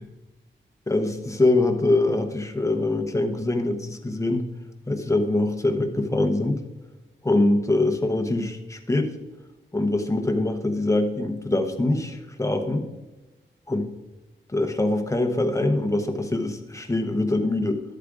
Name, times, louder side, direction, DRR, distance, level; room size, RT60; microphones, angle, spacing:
voice 1, 0.9-4.5 4.9-6.6 7.2-9.1 9.7-12.9 13.7-13.9 14.5-17.8, left 2 dB, 15° left, 5 dB, 0.9 m, -23 dB
12.5 x 8.2 x 2.5 m, 1.1 s
wide cardioid pair, 120°, 20 cm